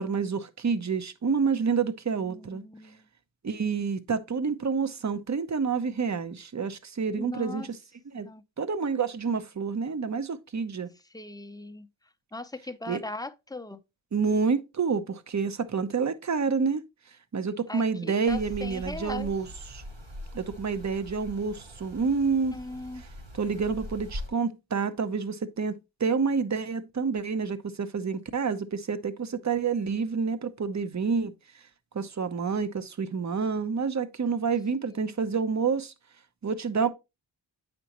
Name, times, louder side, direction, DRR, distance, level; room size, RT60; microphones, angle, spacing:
voice 1, 0.0-2.6 3.4-7.8 8.1-8.3 8.6-10.9 12.9-13.0 14.1-16.8 17.3-19.8 20.3-22.6 23.3-31.3 31.9-35.9 36.4-36.9, right 5 dB, 40° right, 0.8 m, -28 dB
voice 2, 2.2-3.1 7.2-7.7 8.2-8.4 11.1-11.9 12.3-13.8 17.7-19.3 22.5-23.0 34.9-35.1, left 2 dB, 10° left, 0.6 m, -39 dB
sound 1, 18.3-24.3, left 1 dB, 65° right, 2.9 m, -42 dB
8.1 x 5.2 x 2.9 m
cardioid pair, 65°, 45 cm